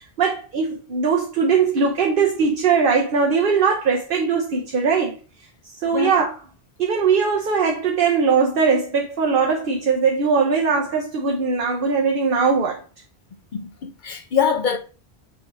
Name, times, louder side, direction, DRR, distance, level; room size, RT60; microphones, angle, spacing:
voice 1, 0.0-5.2 5.6-6.3 6.8-12.8, right 5 dB, 60° right, 1.1 m, -20 dB
voice 2, 13.5-14.8, left 7 dB, 55° left, 0.6 m, -23 dB
6.8 x 2.8 x 4.9 m
omnidirectional pair, 1.1 m